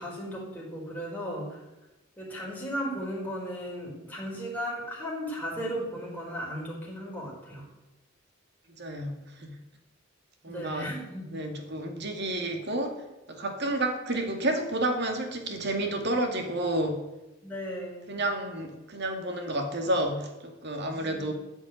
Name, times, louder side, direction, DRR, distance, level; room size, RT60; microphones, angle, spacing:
voice 1, 0.0-1.6 2.2-7.7 10.5-11.3 17.4-18.1 21.0-21.3, equal, 10° left, -4 dB, 4.8 m, -36 dB
voice 2, 8.8-9.6 10.4-10.9 11.3-13.0 13.3-17.0 18.1-21.3, right 1 dB, 60° right, 4 dB, 2.4 m, -30 dB
14.0 x 6.2 x 9.5 m, 1.0 s
head